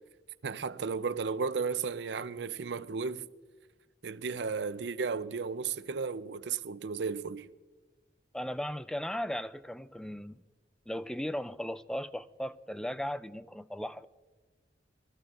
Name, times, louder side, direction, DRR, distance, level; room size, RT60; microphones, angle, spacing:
voice 1, 0.4-3.3 4.0-7.5, right 5 dB, 80° right, 0.5 m, -34 dB
voice 2, 8.3-10.4 10.9-14.1, equal, 5° left, 0.3 m, -37 dB
22.0 x 14.5 x 2.5 m
head